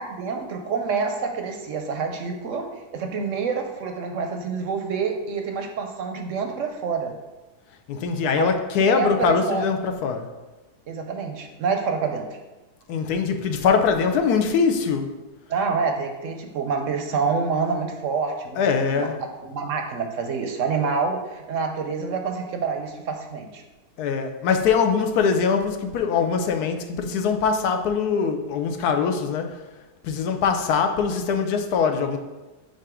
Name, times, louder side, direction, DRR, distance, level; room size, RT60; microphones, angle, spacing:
voice 1, 0.0-7.1 8.4-8.5 8.8-9.7 10.9-12.4 15.5-23.6, right 5 dB, 65° right, 4 dB, 0.8 m, -27 dB
voice 2, 7.9-10.3 12.9-15.1 18.6-19.2 24.0-29.6 30.0-32.2, left 6 dB, 80° left, 6 dB, 1.2 m, -22 dB
7.7 x 2.6 x 4.9 m, 1.1 s
omnidirectional pair, 1.6 m